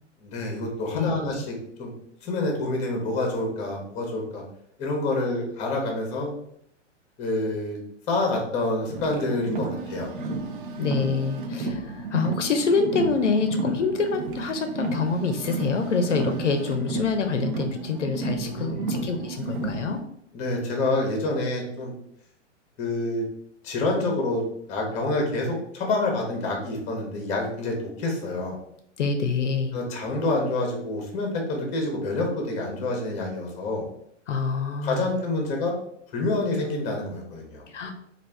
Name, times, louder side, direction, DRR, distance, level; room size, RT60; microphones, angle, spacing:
voice 1, 0.2-1.9 2.2-4.4 4.8-6.3 7.2-7.8 8.1-10.1 18.4-18.9 20.3-21.9 22.8-23.2 23.6-24.4 24.7-28.6 29.7-33.9 34.8-35.7 36.1-37.6, left 2 dB, 20° left, 1 dB, 0.8 m, -27 dB
voice 2, 0.9-1.3 10.8-20.0 29.0-29.8 34.3-35.1 37.7-37.9, left 4 dB, 75° left, 6 dB, 0.5 m, -26 dB
Car, 8.9-20.0, right 3 dB, 45° right, 0.5 m, -32 dB
3.2 x 2.4 x 3.4 m, 0.72 s
figure-of-eight pair, 110°, 37 cm